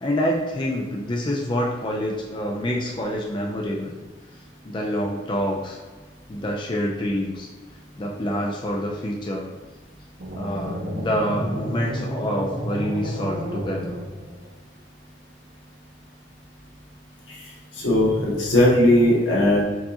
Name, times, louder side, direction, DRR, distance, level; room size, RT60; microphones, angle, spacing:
voice 1, 0.0-4.0 4.3-5.8 6.3-7.5 7.9-9.5 10.3-14.0, equal, 25° left, -1 dB, 0.4 m, -27 dB
sound 1, 10.2-14.5, equal, 60° right, 1.0 m, -31 dB
voice 2, 17.3-19.6, left 1 dB, 90° left, -5 dB, 1.4 m, -19 dB
4.6 x 3.8 x 2.8 m, 1.3 s
head